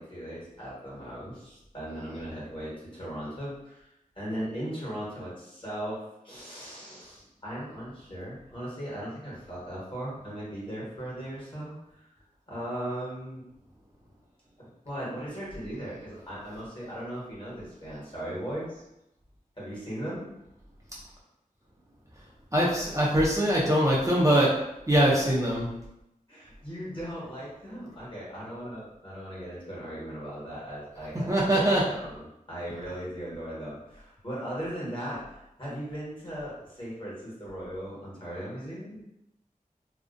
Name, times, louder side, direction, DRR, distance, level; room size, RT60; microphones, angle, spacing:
voice 1, 0.0-3.9 4.1-12.1 12.5-13.4 14.6-18.8 19.6-20.3 26.3-39.0, equal, 35° left, -7 dB, 1.2 m, -38 dB
voice 2, 22.5-24.5 24.9-25.7 31.3-31.8, right 1 dB, 20° right, -6 dB, 0.4 m, -22 dB
2.5 x 2.1 x 2.4 m, 0.85 s
wide cardioid pair, 80°, 15 cm